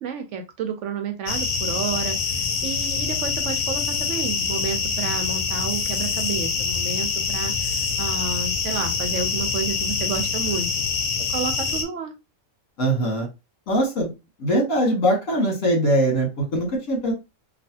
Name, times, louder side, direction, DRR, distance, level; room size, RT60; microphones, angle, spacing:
voice 1, 0.0-10.7 11.3-12.1, right 6 dB, 70° right, 6 dB, 0.8 m, -30 dB
sound 1, 1.3-11.8, left 5 dB, 85° left, 1.1 m, -25 dB
voice 2, 12.8-13.3 13.7-14.1 14.4-17.1, right 1 dB, 65° left, 1 dB, 1.6 m, -22 dB
3.3 x 2.3 x 2.7 m, 0.25 s
omnidirectional pair, 1.4 m